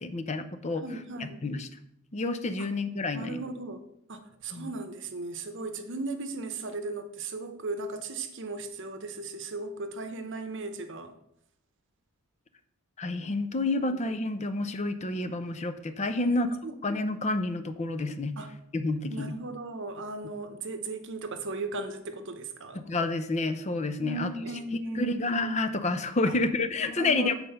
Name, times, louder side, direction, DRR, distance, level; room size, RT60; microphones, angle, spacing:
voice 1, 0.0-0.8 1.2-1.7 2.1-3.4 4.5-4.7 13.0-16.5 16.8-18.4 18.7-19.3 22.7-24.3 25.0-27.3, left 2 dB, 35° left, 10 dB, 0.6 m, -29 dB
voice 2, 0.8-1.4 2.6-2.7 3.1-3.8 4.1-11.1 13.9-14.0 16.2-16.7 18.4-18.5 19.1-22.9 24.0-25.2 26.3-26.4 26.8-27.3, right 2 dB, 60° right, 8 dB, 0.9 m, -37 dB
7.5 x 4.3 x 6.7 m, 0.75 s
head